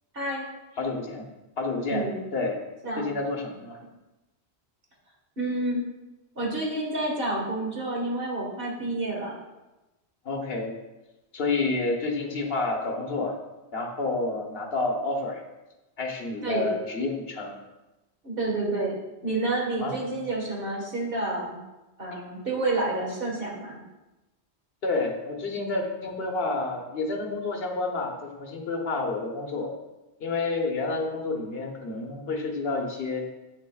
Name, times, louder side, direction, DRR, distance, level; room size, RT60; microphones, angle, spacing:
voice 1, 0.1-0.4 1.9-2.2 2.8-3.1 5.4-5.8 6.3-9.3 16.4-16.8 18.2-19.0 19.2-21.6 22.0-23.8, right 2 dB, 55° right, -2 dB, 1.7 m, -29 dB
voice 2, 0.8-1.3 1.6-2.6 3.0-3.8 10.2-10.7 11.3-13.4 13.7-15.4 16.0-17.5 19.8-20.0 22.1-22.2 24.8-29.7 30.2-33.2, left 3 dB, 60° left, 1 dB, 1.2 m, -29 dB
8.0 x 6.2 x 2.3 m, 1.0 s
omnidirectional pair, 1.1 m